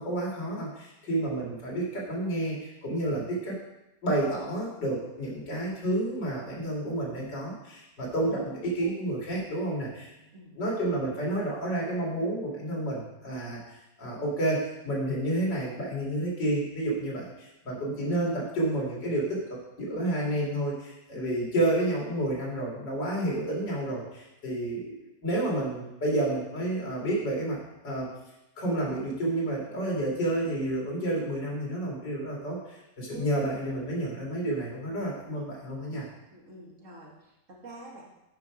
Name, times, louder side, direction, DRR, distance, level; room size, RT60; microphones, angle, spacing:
voice 1, 0.0-3.5 4.0-10.1 10.5-13.6 14.0-27.6 27.8-28.1 28.6-36.1, right 1 dB, 80° left, -3 dB, 2.9 m, -30 dB
voice 2, 36.3-38.0, right 1 dB, 45° right, -3 dB, 1.9 m, -46 dB
9.7 x 4.9 x 4.9 m, 0.92 s
omnidirectional pair, 1.9 m